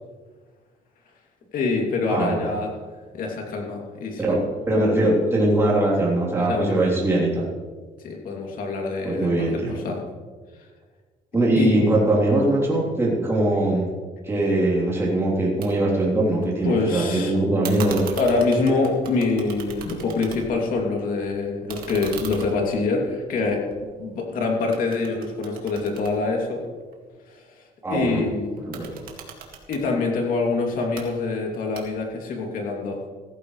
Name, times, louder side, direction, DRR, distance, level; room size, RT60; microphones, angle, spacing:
voice 1, 1.5-2.7 3.1-4.2 6.4-6.9 8.0-10.0 11.5-11.8 16.6-17.3 18.2-23.6 24.0-26.6 27.3-27.4 27.9-28.5 29.7-33.1, left 3 dB, 65° left, 1 dB, 2.8 m, -25 dB
voice 2, 2.1-2.5 4.2-7.5 9.0-9.8 11.3-13.9 14.2-18.2 27.8-28.2 28.7-29.0, right 1 dB, 15° right, -5 dB, 3.5 m, -21 dB
sound 1, 15.6-15.7 16.0-16.8 17.6-20.7 21.0-24.3 24.7-26.9 28.6-29.8 30.7-31.1 31.7-32.2, right 6 dB, 80° right, 2.1 m, -39 dB
15.5 x 14.5 x 3.3 m, 1.5 s
cardioid pair, 135°, 15 cm